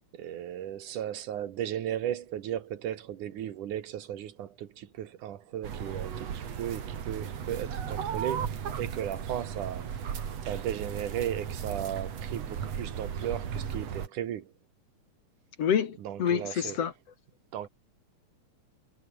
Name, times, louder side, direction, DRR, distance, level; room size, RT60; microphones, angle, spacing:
voice 1, 0.1-10.1 10.4-14.5 16.0-16.8 17.5-17.7, right 11 dB, 80° right, 3.1 m, -36 dB
sound 1, 5.6-14.1, right 8 dB, 60° right, 3.2 m, -36 dB
voice 2, 15.6-16.9, left 8 dB, 55° left, 2.6 m, -27 dB
omnidirectional pair, 3.5 m